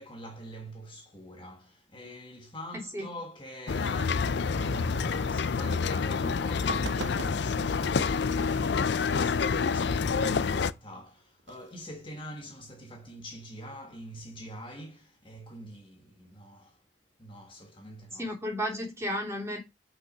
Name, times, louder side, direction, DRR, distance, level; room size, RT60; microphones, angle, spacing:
voice 1, 0.0-16.8 17.2-18.3, equal, 25° left, 1.4 m, -44 dB
sound 1, 3.7-10.7, left 5 dB, 60° left, 0.4 m, -28 dB
sound 2, 6.5-8.2 8.9-9.0 11.4-11.9, right 3 dB, 65° right, 0.7 m, -42 dB
voice 2, 18.1-19.6, equal, 15° right, 3.0 m, -33 dB
6.0 x 5.6 x 5.3 m
head